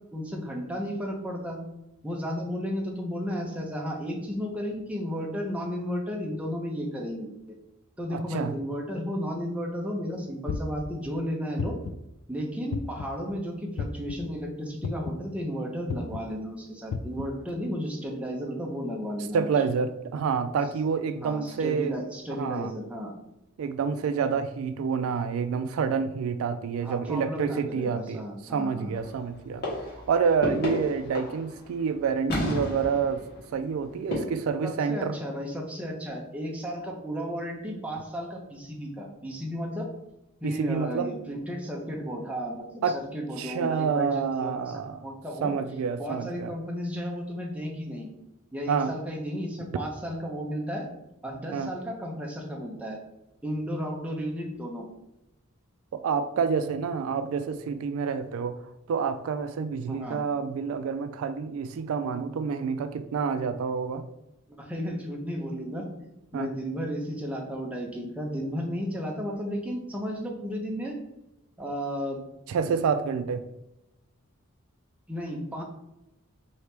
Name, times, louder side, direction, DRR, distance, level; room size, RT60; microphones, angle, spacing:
voice 1, 0.1-1.6 2.0-7.3 8.0-11.8 12.3-19.5 21.2-23.1 26.8-28.9 34.6-39.9 40.4-42.6 42.9-45.5 46.0-48.1 48.5-50.9 51.2-53.0 53.4-54.9 59.9-60.2 64.6-65.9 66.3-71.0 71.6-72.2 75.1-75.6, equal, 5° right, -1 dB, 0.7 m, -33 dB
voice 2, 8.1-8.5 19.3-22.0 22.3-22.7 23.6-29.6 30.1-33.2 33.5-35.2 40.4-41.1 42.8-43.0 43.4-45.1 45.4-46.5 48.7-48.9 51.5-51.7 55.9-58.6 58.9-64.0 66.3-66.5 72.5-73.4, right 6 dB, 70° right, 10 dB, 0.3 m, -28 dB
sound 1, 10.5-10.9 11.6-12.1 12.7-13.2 13.8-14.1 14.8-15.2 15.9-16.2 16.9-17.3, left 5 dB, 85° left, 0.3 m, -32 dB
sound 2, 28.9-29.4 29.6-31.8 32.3-34.2, left 1 dB, 50° left, 1.4 m, -32 dB
4.6 x 2.8 x 3.3 m, 0.90 s
head